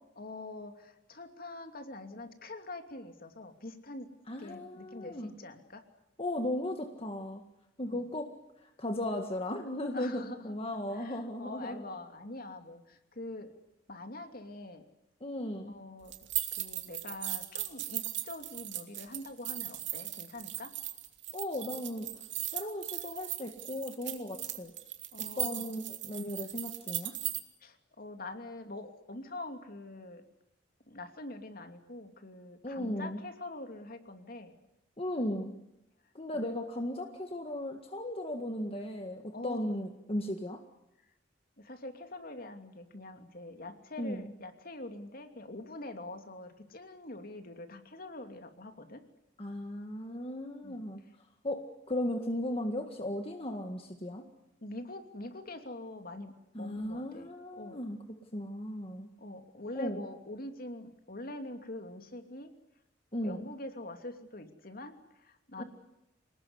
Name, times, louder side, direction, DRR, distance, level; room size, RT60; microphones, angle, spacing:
voice 1, 0.2-4.1 4.4-5.8 7.8-8.0 9.9-10.5 10.9-13.5 13.9-14.8 15.7-16.1 16.5-20.7 25.1-25.6 27.6-30.2 30.9-34.5 36.3-36.5 39.3-39.7 41.6-49.0 50.6-50.8 54.6-57.3 57.6-57.8 59.2-62.5 63.2-65.6, left 2 dB, 50° left, 6 dB, 2.8 m, -44 dB
voice 2, 4.3-5.3 6.2-7.4 7.8-8.3 8.6-11.8 15.2-15.7 21.3-22.1 22.5-24.7 25.4-27.1 32.6-33.2 35.0-35.5 36.2-40.6 44.0-44.3 49.4-51.0 51.4-51.6 51.9-54.2 56.6-58.0 58.3-59.1 59.8-60.0 63.1-63.5 65.6-65.7, left 1 dB, 30° left, 4 dB, 1.9 m, -36 dB
sound 1, 16.1-27.4, right 14 dB, 75° right, 2.6 m, -38 dB
28.0 x 19.0 x 9.7 m, 0.88 s
head